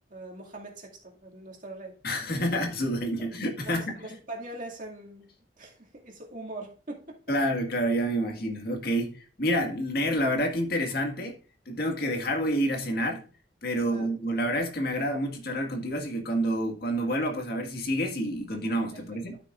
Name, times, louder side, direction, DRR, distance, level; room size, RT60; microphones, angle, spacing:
voice 1, 0.0-2.0 3.6-5.3 5.6-7.2 13.7-14.1 18.9-19.2, right 2 dB, 50° right, 2.2 m, -42 dB
voice 2, 2.0-3.9 7.3-11.3 11.6-13.2 13.6-19.4, equal, 60° left, 1.8 m, -28 dB
13.0 x 6.3 x 2.5 m
head